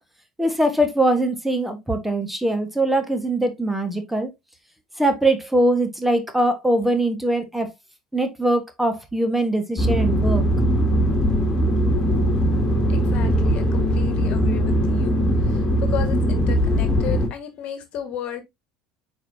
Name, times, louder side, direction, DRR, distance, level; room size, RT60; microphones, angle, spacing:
voice 1, 0.4-4.3 5.0-7.7 8.1-10.4, right 1 dB, 5° right, 1.4 m, -22 dB
sound 1, 9.8-17.3, equal, 25° left, 2.5 m, -20 dB
voice 2, 12.9-18.4, left 8 dB, 45° left, 1.8 m, -34 dB
8.9 x 4.6 x 2.7 m
figure-of-eight pair, 70°, 3 cm